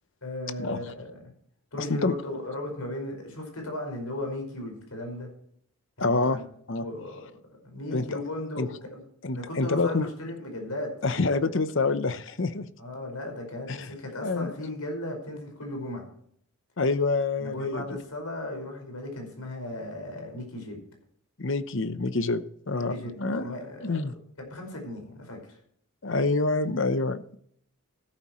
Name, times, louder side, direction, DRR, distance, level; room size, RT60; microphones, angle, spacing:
voice 1, 0.2-1.2 1.7-5.3 6.0-6.4 6.8-7.2 7.6-9.0 9.3-11.5 12.8-16.1 17.4-20.8 22.7-24.1 24.4-25.6, left 1 dB, 85° left, 3 dB, 5.2 m, -36 dB
voice 2, 1.8-2.1 6.0-6.4 6.7-6.8 7.9-8.2 8.6-8.7 9.2-10.1 11.0-12.7 13.7-13.9 14.2-14.5 16.8-17.8 21.4-23.5 23.8-24.1 26.0-27.4, left 3 dB, 55° left, 13 dB, 0.8 m, -27 dB
14.0 x 12.5 x 3.1 m, 0.65 s
head